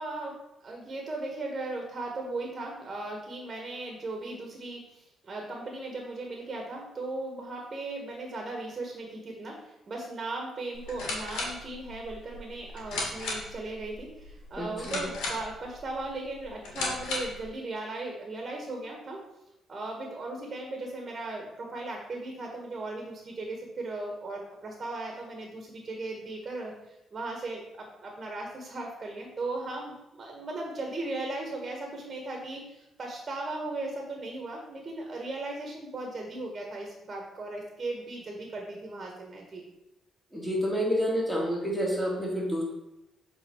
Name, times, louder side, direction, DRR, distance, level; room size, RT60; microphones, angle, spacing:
voice 1, 0.0-19.2 19.7-39.6, right 2 dB, 40° right, 1 dB, 1.5 m, -37 dB
sound 1, 10.7-17.5, left 2 dB, 90° left, 2.1 m, -36 dB
voice 2, 14.6-15.0 40.3-42.6, equal, 5° left, -3 dB, 2.3 m, -29 dB
7.5 x 4.0 x 4.6 m, 0.91 s
cardioid pair, 90°, 0 cm